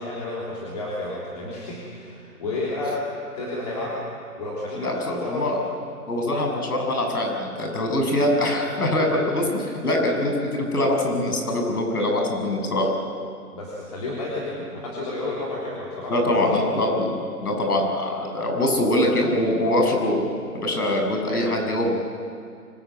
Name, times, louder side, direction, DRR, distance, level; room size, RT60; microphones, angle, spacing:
voice 1, 0.0-4.0 4.4-5.6 8.7-9.2 13.5-16.8, left 2 dB, 25° left, -5 dB, 3.4 m, -31 dB
voice 2, 4.8-5.6 6.1-12.9 16.1-17.1 17.4-20.2 20.5-22.0, left 1 dB, 70° left, 2 dB, 7.6 m, -23 dB
25.0 x 21.0 x 9.2 m, 2.3 s
hypercardioid pair, 175°, 47 cm